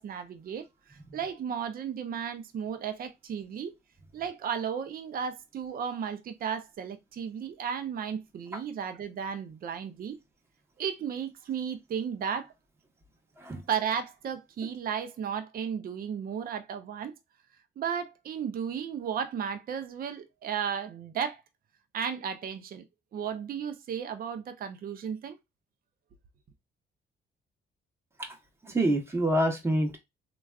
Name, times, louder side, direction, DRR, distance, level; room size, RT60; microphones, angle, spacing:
voice 1, 0.0-3.7 4.1-10.2 10.8-12.5 13.7-17.2 17.8-21.4 21.9-22.8 23.1-25.4, right 7 dB, 50° right, 0.5 m, -34 dB
voice 2, 28.6-30.0, right 1 dB, 15° right, 0.9 m, -26 dB
3.4 x 2.3 x 2.3 m
cardioid pair, 90°, 20 cm